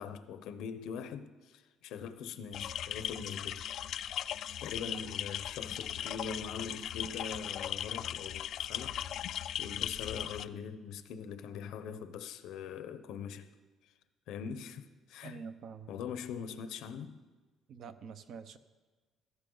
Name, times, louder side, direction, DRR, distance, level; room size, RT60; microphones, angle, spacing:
voice 1, 0.0-3.6 4.6-13.5 13.8-13.9 14.3-15.4 15.9-17.2, left 6 dB, 75° left, 0.8 m, -42 dB
sound 1, 2.5-10.5, left 11 dB, 55° left, 0.3 m, -38 dB
voice 2, 15.2-15.9 17.7-18.6, right 6 dB, 50° right, 0.7 m, -46 dB
15.5 x 14.0 x 3.9 m
cardioid pair, 165°, 0 cm